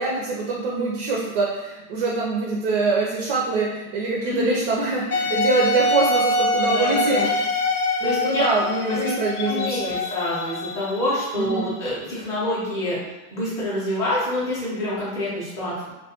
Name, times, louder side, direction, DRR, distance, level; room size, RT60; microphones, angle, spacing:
voice 1, 0.0-7.3 8.0-10.0 11.4-11.7, right 3 dB, 45° right, -2 dB, 0.5 m, -24 dB
voice 2, 4.2-4.7 6.6-7.3 8.0-9.0 9.5-13.0 13.3-15.9, left 1 dB, 5° left, -10 dB, 0.5 m, -27 dB
Wind instrument woodwind instrument, 5.1-10.7, left 2 dB, 90° left, 0.6 m, -24 dB
sound 1, 7.2-13.4, left 3 dB, 50° left, 0.7 m, -40 dB
2.2 x 2.2 x 2.7 m, 1.0 s
supercardioid pair, 140°, 46 cm